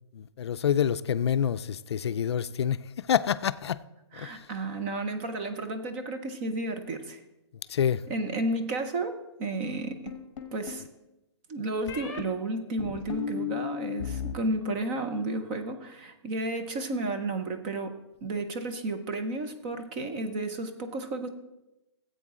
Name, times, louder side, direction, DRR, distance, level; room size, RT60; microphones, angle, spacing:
voice 1, 0.1-2.8 3.1-3.8 4.1-4.3 7.7-8.0, left 8 dB, 65° left, 0.4 m, -27 dB
voice 2, 4.1-7.2 8.1-10.1 10.5-10.8 11.5-18.0 18.2-21.3, right 2 dB, 20° right, 0.6 m, -32 dB
sound 1, 10.1-10.9 11.9-12.2 12.8-14.3 14.6-15.2, left 8 dB, 40° left, 1.4 m, -35 dB
15.0 x 8.1 x 3.7 m
hypercardioid pair, 170°, 15 cm